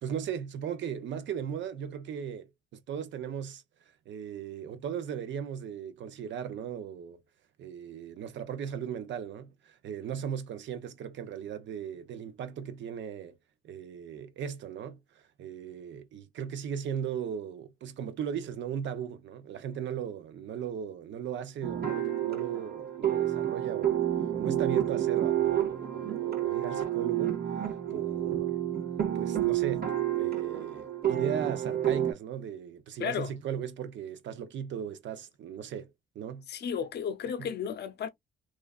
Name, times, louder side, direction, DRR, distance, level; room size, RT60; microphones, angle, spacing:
voice 1, 0.0-3.6 4.1-7.2 7.6-13.4 13.6-24.0 24.4-27.4 27.9-28.6 29.1-36.5 37.4-37.5, right 8 dB, 65° right, 0.6 m, -37 dB
sound 1, 21.6-32.1, right 11 dB, 50° right, 1.6 m, -29 dB
voice 2, 33.0-33.3 36.5-38.1, left 7 dB, 60° left, 0.6 m, -33 dB
3.1 x 2.4 x 2.3 m
cardioid pair, 90°, 20 cm